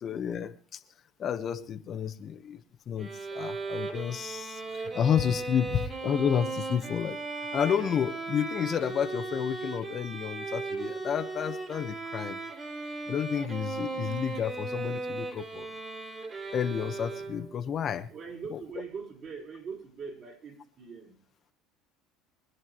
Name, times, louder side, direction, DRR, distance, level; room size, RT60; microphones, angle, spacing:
voice 1, 0.0-0.8 1.2-2.6 2.9-7.2 7.5-12.4 13.1-15.7 16.5-18.1, left 8 dB, 40° left, 8 dB, 1.1 m, -31 dB
Bowed string instrument, 3.0-17.6, right 3 dB, 30° right, 3.4 m, -37 dB
voice 2, 18.1-21.2, right 5 dB, 45° right, -1 dB, 5.3 m, -42 dB
24.5 x 11.0 x 3.1 m, 0.41 s
supercardioid pair, 115°, 0 cm